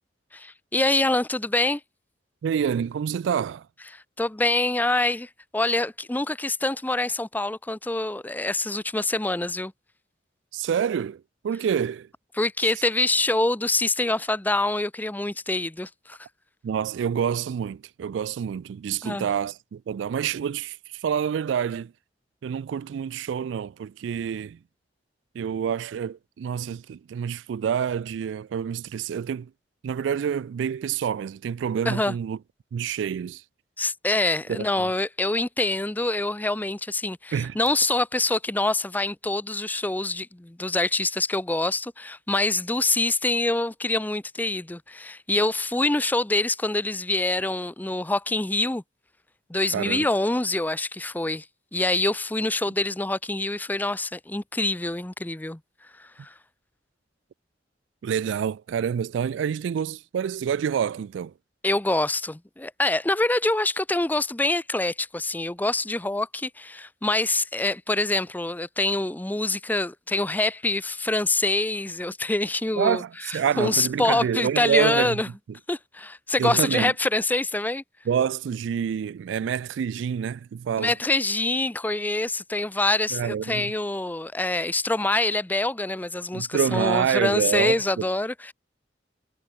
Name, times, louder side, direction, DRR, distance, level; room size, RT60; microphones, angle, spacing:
voice 1, 0.3-1.8 3.9-9.7 12.4-16.2 19.0-19.3 31.9-32.2 33.8-48.8 49.5-51.5 51.7-55.6 56.0-56.3 61.6-75.3 75.7-77.8 80.8-88.5, left 2 dB, 10° left, 0.5 m, -25 dB
voice 2, 2.4-3.6 10.5-12.1 16.6-21.9 22.4-24.6 25.4-29.5 29.8-32.4 32.7-33.4 34.5-34.9 37.3-37.6 49.7-50.1 58.0-61.3 72.8-75.2 76.4-76.9 78.1-80.9 83.1-83.7 86.3-87.7, right 8 dB, 85° right, 0.3 m, -27 dB
head